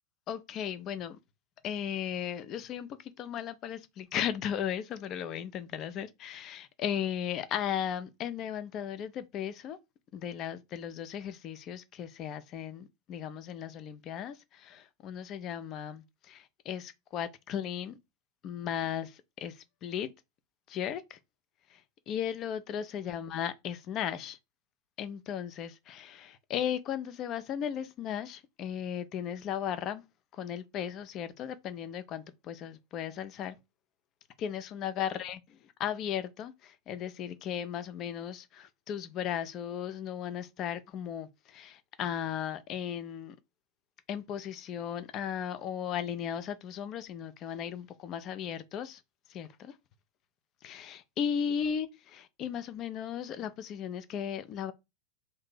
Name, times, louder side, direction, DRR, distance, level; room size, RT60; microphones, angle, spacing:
voice 1, 0.3-1.2 1.6-9.8 10.1-18.0 18.4-20.1 20.7-21.2 21.7-24.4 25.0-30.0 30.3-33.5 34.4-35.4 35.8-43.4 44.1-49.0 49.3-49.8 50.6-54.7, left 9 dB, 35° left, 0.4 m, -36 dB
2.7 x 2.6 x 3.7 m
figure-of-eight pair, 90°, 0 cm